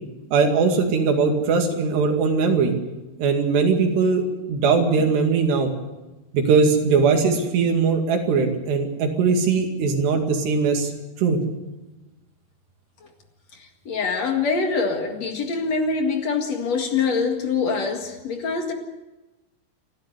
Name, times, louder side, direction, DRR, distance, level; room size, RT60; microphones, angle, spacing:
voice 1, 0.3-2.7 3.2-5.7 6.3-10.9 11.2-11.4, right 5 dB, 85° right, 4 dB, 4.5 m, -20 dB
voice 2, 13.9-18.7, left 4 dB, 50° left, 3 dB, 2.7 m, -24 dB
29.5 x 12.0 x 8.1 m, 1.1 s
omnidirectional pair, 4.7 m